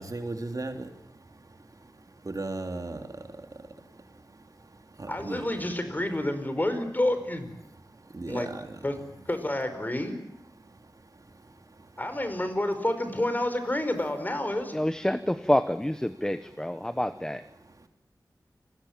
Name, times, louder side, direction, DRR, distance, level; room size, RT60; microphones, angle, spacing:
voice 1, 0.0-5.7 7.6-9.0 10.5-12.0 17.6-17.9, right 2 dB, 50° right, 5 dB, 3.2 m, -40 dB
voice 2, 5.1-7.5 8.3-8.5 8.8-9.0 9.2-10.2 12.0-14.7, left 1 dB, 25° left, 9 dB, 5.0 m, -29 dB
voice 3, 14.7-17.4, left 1 dB, 10° left, 12 dB, 1.0 m, -27 dB
29.5 x 21.5 x 7.4 m, 0.80 s
wide cardioid pair, 80°, 7 cm